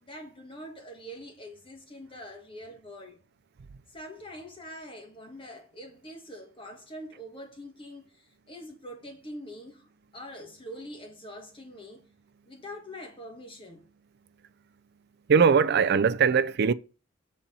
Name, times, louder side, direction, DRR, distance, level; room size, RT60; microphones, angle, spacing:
voice 1, 0.0-3.2 3.9-8.1 8.5-9.8 10.1-12.1 12.5-13.9, equal, 25° left, 1.6 m, -44 dB
voice 2, 15.3-16.7, right 6 dB, 55° right, 0.4 m, -21 dB
7.4 x 4.3 x 5.3 m
head